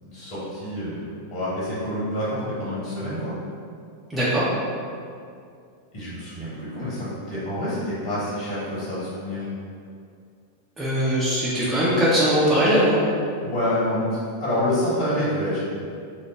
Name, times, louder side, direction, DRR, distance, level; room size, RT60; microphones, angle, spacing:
voice 1, 0.0-3.3 5.9-9.5 13.4-14.1 14.4-15.6, left 1 dB, 40° left, -10 dB, 1.2 m, -27 dB
voice 2, 4.1-4.4 10.8-13.1, equal, 15° right, -10 dB, 0.5 m, -20 dB
3.0 x 2.1 x 3.4 m, 2.3 s
figure-of-eight pair, 90°, 0 cm